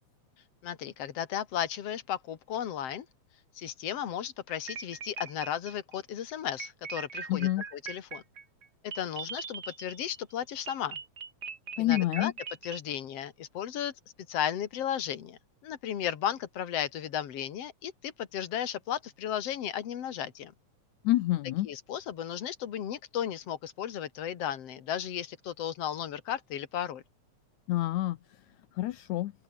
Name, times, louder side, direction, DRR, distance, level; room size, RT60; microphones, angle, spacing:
voice 1, 0.6-3.1 3.6-8.2 8.8-11.0 11.8-12.3 12.6-13.9 14.3-20.5 21.7-27.0, left 10 dB, 55° left, 2.7 m, -35 dB
sound 1, 4.5-6.0 6.6-10.2 10.7-12.8, right 5 dB, 35° right, 2.3 m, -41 dB
voice 2, 7.3-7.6 11.8-12.3 21.0-21.7 27.7-28.2 28.8-29.3, left 15 dB, 75° left, 2.1 m, -27 dB
open air
omnidirectional pair, 3.5 m